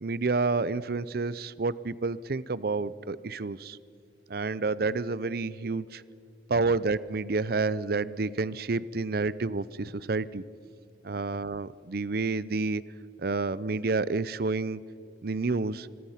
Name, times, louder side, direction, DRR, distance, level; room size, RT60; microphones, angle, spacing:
voice 1, 0.0-3.8 4.3-6.0 6.5-10.4 11.0-12.8 13.2-14.8 15.2-15.9, right 3 dB, 55° right, 19 dB, 0.6 m, -29 dB
26.5 x 21.5 x 5.7 m, 2.3 s
head